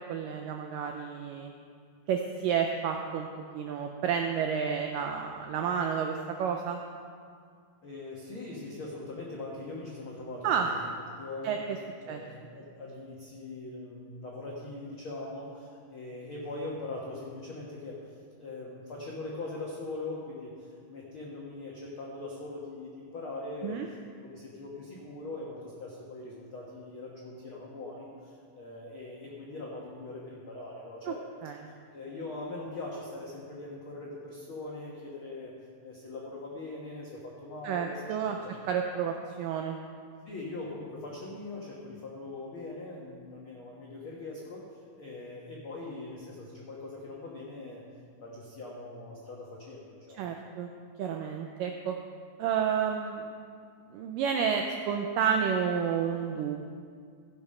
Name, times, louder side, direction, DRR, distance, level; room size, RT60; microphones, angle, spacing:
voice 1, 0.1-1.5 2.1-3.3 3.5-6.8 10.4-10.7 11.4-11.6 12.1-12.2 23.6-23.9 31.1-31.2 31.4-31.6 37.6-38.4 38.7-39.8 50.2-50.7 51.0-51.9 52.4-53.3 53.9-56.7, right 7 dB, 85° right, 3 dB, 1.9 m, -30 dB
voice 2, 7.8-10.9 11.2-11.6 12.0-18.0 18.4-24.0 24.2-31.2 31.9-35.5 35.8-38.5 40.2-47.8 48.2-50.2, left 2 dB, 90° left, -4 dB, 1.1 m, -41 dB
16.0 x 7.0 x 5.6 m, 2.2 s
omnidirectional pair, 4.6 m